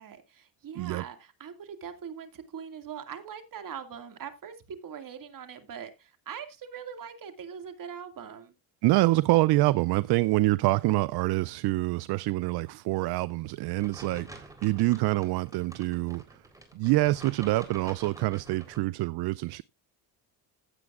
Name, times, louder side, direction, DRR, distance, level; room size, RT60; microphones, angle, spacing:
voice 1, 0.0-8.5, right 7 dB, 50° right, 2.3 m, -42 dB
voice 2, 8.8-16.4 16.7-19.6, right 19 dB, 65° right, 0.5 m, -26 dB
sound 1, 13.8-18.8, right 1 dB, 10° right, 3.8 m, -48 dB
16.0 x 8.0 x 2.5 m
cardioid pair, 90°, 43 cm